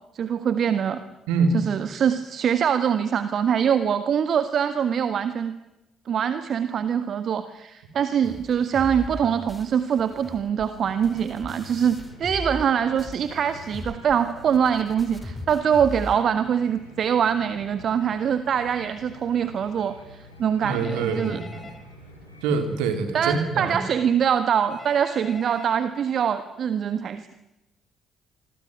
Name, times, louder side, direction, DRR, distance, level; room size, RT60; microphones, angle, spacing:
voice 1, 0.1-1.0 1.7-5.5 6.1-21.4 23.1-27.3, right 8 dB, 50° right, 11 dB, 1.6 m, -24 dB
sound 1, 8.2-12.7 13.0-16.2, left 1 dB, 5° left, 3.9 m, -39 dB
sound 2, 10.7-23.7, left 1 dB, 90° left, 5.5 m, -47 dB
Telephone, 20.6-21.8 24.7-25.8, left 3 dB, 25° left, 4.7 m, -43 dB
voice 2, 20.6-21.7 22.4-23.8, right 4 dB, 65° right, 7 dB, 4.0 m, -25 dB
26.5 x 22.5 x 9.4 m, 0.95 s
figure-of-eight pair, 45°, 0 cm